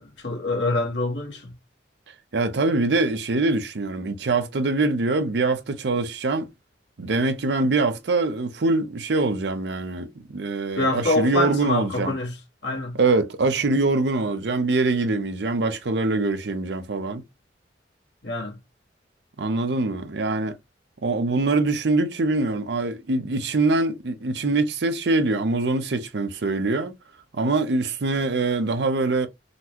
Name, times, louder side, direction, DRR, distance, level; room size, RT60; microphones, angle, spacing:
voice 1, 0.0-1.5 10.8-12.3 12.6-13.0 18.2-18.6, left 2 dB, 75° left, 1.4 m, -25 dB
voice 2, 2.3-6.5 7.0-12.2 12.9-17.2 19.4-20.6 21.0-26.9 27.3-29.3, right 3 dB, 65° right, 0.6 m, -23 dB
3.9 x 2.2 x 2.8 m
head